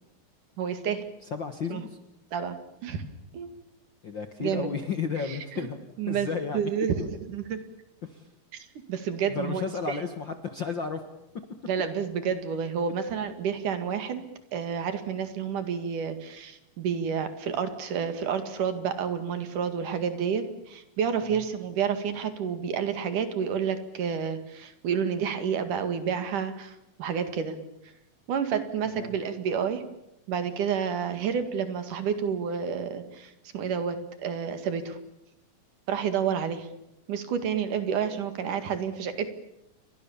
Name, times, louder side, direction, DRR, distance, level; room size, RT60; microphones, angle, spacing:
voice 1, 0.6-1.0 1.7-1.8 2.3-3.0 3.3-3.5 4.4-4.7 5.2-5.7 6.0-6.3 6.5-7.6 8.5-10.0 11.7-14.2 14.5-27.6 28.3-29.8 30.3-35.0 35.9-36.7 37.1-39.3, right 7 dB, 65° right, 9 dB, 3.4 m, -30 dB
voice 2, 1.3-2.0 4.0-5.8 6.1-6.6 8.0-8.2 9.3-11.0 21.3-21.4 28.9-29.1, left 5 dB, 50° left, 7 dB, 1.5 m, -33 dB
29.5 x 24.0 x 7.2 m, 0.87 s
omnidirectional pair, 4.0 m